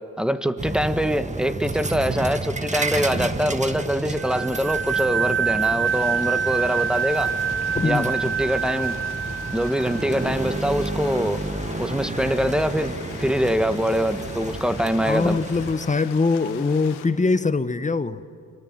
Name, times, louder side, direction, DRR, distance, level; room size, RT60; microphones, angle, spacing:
voice 1, 0.2-7.3 7.8-9.0 9.5-11.4 11.8-15.4, equal, ahead, 1.7 m, -24 dB
sound 1, 0.6-15.7, right 2 dB, 20° right, 1.8 m, -31 dB
sound 2, 4.2-10.6, right 7 dB, 35° right, 1.0 m, -26 dB
Stream, 5.8-17.1, left 9 dB, 80° left, 2.3 m, -41 dB
voice 2, 7.7-8.1 15.0-18.2, left 4 dB, 20° left, 1.3 m, -22 dB
29.5 x 25.5 x 7.7 m
supercardioid pair, 60°, 39 cm